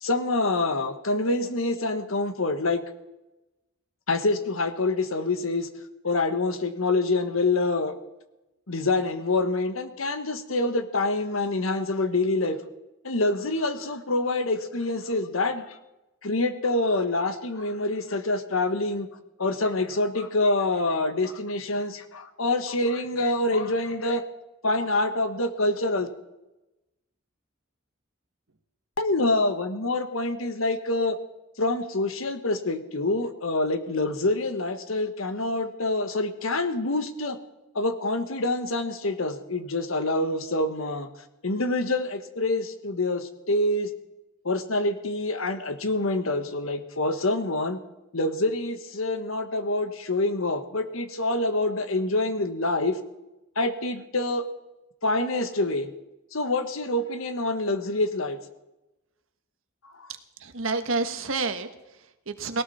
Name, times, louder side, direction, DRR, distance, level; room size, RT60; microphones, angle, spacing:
voice 1, 0.0-2.8 4.1-5.7 6.0-7.9 8.7-12.6 13.0-15.7 16.2-19.1 19.4-24.2 24.6-26.1 29.0-31.2 31.6-37.4 37.7-41.1 41.4-43.9 44.4-47.8 48.1-53.0 53.5-54.5 55.0-55.9 56.3-58.4 59.9-60.1, left 2 dB, 85° left, 9 dB, 1.5 m, -26 dB
voice 2, 60.4-62.6, right 3 dB, 75° right, 8 dB, 1.4 m, -29 dB
18.5 x 18.0 x 4.3 m, 0.97 s
head